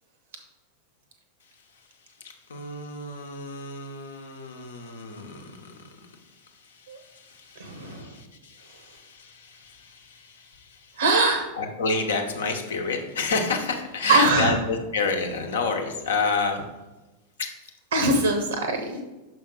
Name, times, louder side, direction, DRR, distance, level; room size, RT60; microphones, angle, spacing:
voice 1, 2.2-11.0 11.6-16.6 17.4-17.5, left 4 dB, 65° left, 4 dB, 1.0 m, -30 dB
voice 2, 7.6-8.2 11.0-11.5 14.1-14.6 17.9-19.0, right 2 dB, 70° right, 5 dB, 0.8 m, -22 dB
6.2 x 5.5 x 3.7 m, 1.1 s
figure-of-eight pair, 90°, 0 cm